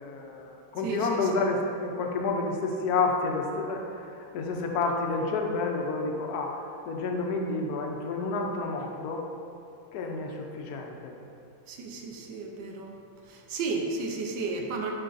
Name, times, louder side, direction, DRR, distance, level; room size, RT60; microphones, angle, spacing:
voice 1, 0.0-9.2 9.9-11.2, left 3 dB, 65° left, 1 dB, 1.1 m, -30 dB
voice 2, 11.7-12.9 13.3-14.9, right 4 dB, 70° right, 2 dB, 1.3 m, -33 dB
11.0 x 4.7 x 2.6 m, 2.6 s
omnidirectional pair, 2.1 m